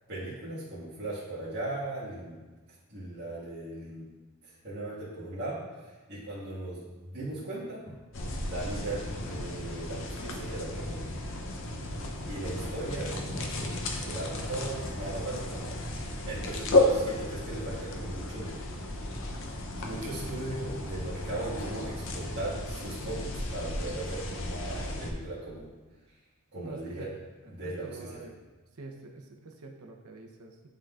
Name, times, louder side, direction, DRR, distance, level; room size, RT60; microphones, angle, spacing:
voice 1, 0.1-2.3 2.9-4.0 4.6-7.8 8.4-11.0 12.2-18.6 19.8-25.7 26.5-27.1 27.4-28.2, right 2 dB, 50° right, -11 dB, 1.7 m, -38 dB
sound 1, 8.1-25.1, left 2 dB, 60° left, 0.7 m, -33 dB
voice 2, 26.5-27.1 27.6-28.3 28.8-30.7, right 3 dB, 90° right, 2 dB, 0.8 m, -46 dB
10.5 x 3.8 x 2.4 m, 1.3 s
head